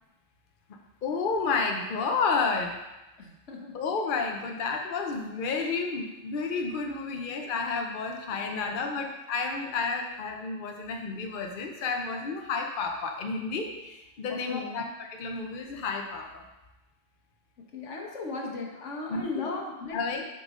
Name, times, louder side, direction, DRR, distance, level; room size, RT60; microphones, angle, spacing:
voice 1, 1.0-2.7 3.7-16.4 19.1-19.6 19.9-20.3, left 4 dB, 50° left, 3 dB, 0.9 m, -31 dB
voice 2, 3.2-3.8 8.4-8.7 14.3-14.8 17.7-20.0, left 3 dB, 90° left, 0 dB, 1.4 m, -37 dB
7.2 x 5.3 x 3.7 m, 1.0 s
omnidirectional pair, 1.2 m